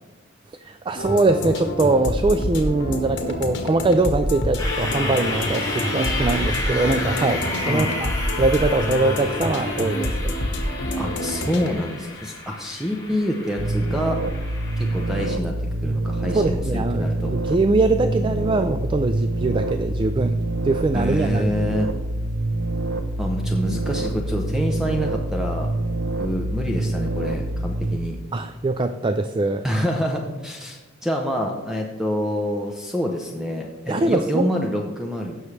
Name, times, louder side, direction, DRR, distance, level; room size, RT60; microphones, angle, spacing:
voice 1, 0.6-8.1 8.4-10.2 16.3-20.4 20.6-21.5 28.3-29.6 33.9-34.5, right 2 dB, 25° right, 10 dB, 0.3 m, -22 dB
sound 1, 1.0-11.7, left 1 dB, 60° left, 1.4 m, -27 dB
sound 2, 4.6-15.3, left 2 dB, 20° left, 1.9 m, -31 dB
voice 2, 11.0-14.2 14.8-15.5 15.8-17.3 20.9-21.9 23.2-25.7 26.2-28.2 29.6-35.4, equal, 5° right, 1 dB, 0.7 m, -26 dB
sound 3, 13.6-28.0, right 2 dB, 60° right, 0.7 m, -26 dB
16.5 x 6.3 x 3.3 m, 1.2 s
head